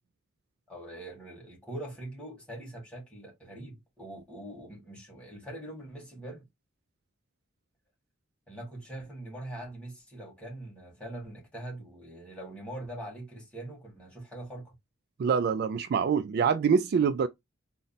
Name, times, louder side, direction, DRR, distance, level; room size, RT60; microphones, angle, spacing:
voice 1, 0.7-6.5 8.5-14.7, right 1 dB, 5° left, 2.1 m, -43 dB
voice 2, 15.2-17.3, right 6 dB, 50° right, 0.3 m, -25 dB
4.0 x 2.1 x 4.0 m
head